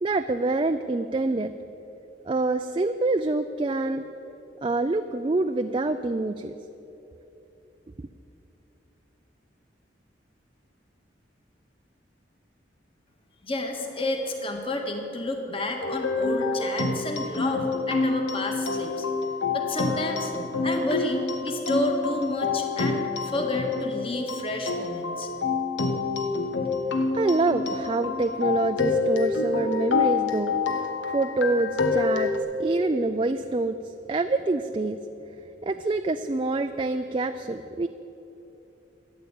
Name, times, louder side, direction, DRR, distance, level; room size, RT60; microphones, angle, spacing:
voice 1, 0.0-1.5 2.3-4.0 4.6-6.5 27.1-32.3 32.6-35.0 35.6-37.9, right 2 dB, 25° right, 7 dB, 0.4 m, -26 dB
voice 2, 13.4-19.1 19.5-20.3 20.6-25.3, left 1 dB, 30° left, 3 dB, 1.7 m, -30 dB
sound 1, 15.8-32.4, left 4 dB, 90° left, 1.3 m, -27 dB
13.5 x 10.5 x 8.9 m, 3.0 s
head